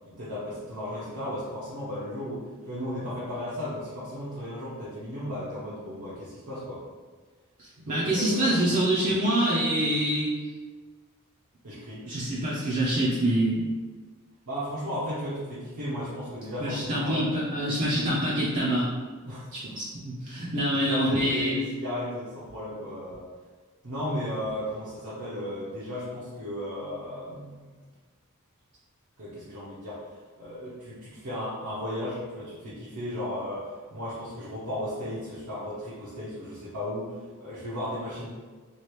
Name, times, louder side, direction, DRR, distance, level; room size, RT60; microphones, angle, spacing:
voice 1, 0.0-6.8 7.8-8.7 11.6-12.1 14.5-17.3 17.7-17.8 19.2-19.5 20.4-23.2 23.8-27.7 29.2-30.0 30.4-38.3, equal, 70° right, -10 dB, 0.8 m, -35 dB
voice 2, 7.6-10.3 12.1-13.7 16.6-18.9 19.5-21.6, right 1 dB, 35° right, -8 dB, 0.5 m, -26 dB
3.1 x 2.4 x 3.1 m, 1.4 s
head